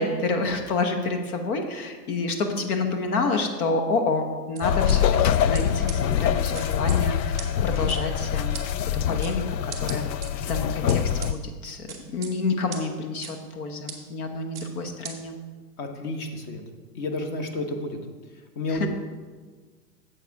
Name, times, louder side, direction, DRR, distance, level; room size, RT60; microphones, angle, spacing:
voice 1, 0.0-8.6 9.1-10.1 10.4-15.4 18.7-18.9, left 3 dB, 60° left, 5 dB, 1.2 m, -28 dB
sound 1, 4.6-11.3, left 9 dB, 85° left, 0.6 m, -24 dB
sound 2, 4.6-5.0 5.5-5.6 5.9-6.0 6.5-7.0 7.4-7.5 7.9-8.0 8.5-8.6 9.2-9.3 9.7-10.3 10.9-11.3 11.9-12.3 12.7-12.8 13.2-13.3 13.9-14.0 14.5-14.7 15.0-15.1, right 9 dB, 5° right, 0.4 m, -37 dB
voice 2, 15.8-16.6 16.9-18.0 18.5-18.9, left 2 dB, 30° left, 5 dB, 1.1 m, -30 dB
8.0 x 7.5 x 4.7 m, 1.4 s
hypercardioid pair, 140°, 50 cm